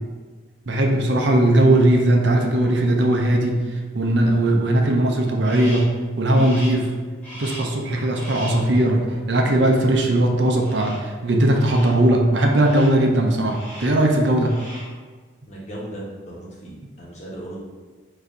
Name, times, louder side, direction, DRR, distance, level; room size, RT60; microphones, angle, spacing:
voice 1, 0.7-3.6 3.9-6.9 7.3-14.6, right 1 dB, 60° right, 1 dB, 0.6 m, -19 dB
Crow, 5.4-6.0 6.3-6.9 7.2-7.8 8.1-8.7 10.6-11.1 11.5-12.0 12.5-13.0 13.5-14.0 14.3-15.0, equal, 10° left, 1.4 m, -39 dB
voice 2, 15.5-17.6, right 1 dB, 35° left, -5 dB, 1.1 m, -36 dB
4.0 x 2.7 x 4.7 m, 1.4 s
head